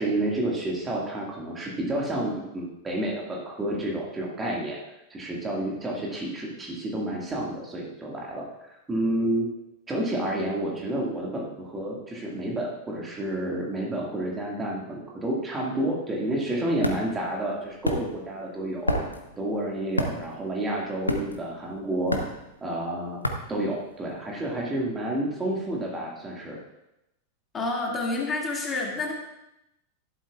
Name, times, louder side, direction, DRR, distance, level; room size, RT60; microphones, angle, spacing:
voice 1, 0.0-4.8 5.1-9.5 9.9-19.0 19.4-22.3 22.6-23.2 23.5-26.6, right 1 dB, 15° right, -2 dB, 1.9 m, -30 dB
sound 1, 16.2-24.4, left 1 dB, 80° left, 0.8 m, -31 dB
voice 2, 27.5-29.1, left 3 dB, 20° left, -2 dB, 2.2 m, -28 dB
12.0 x 11.5 x 2.4 m, 0.87 s
figure-of-eight pair, 90°, 0 cm